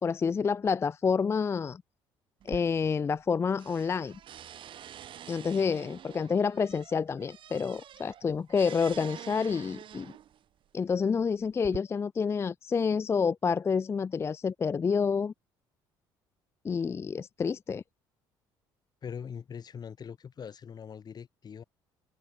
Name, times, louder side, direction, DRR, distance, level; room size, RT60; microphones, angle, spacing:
voice 1, 0.0-1.8 2.5-4.2 5.3-10.1 10.7-15.3 16.6-17.8, left 5 dB, 25° left, 0.3 m, -28 dB
sound 1, 2.4-3.3 3.6-10.4 11.2-11.8, right 10 dB, 55° right, 2.0 m, -47 dB
voice 2, 19.0-21.6, left 7 dB, 40° left, 3.4 m, -42 dB
supercardioid pair, 80°, 10 cm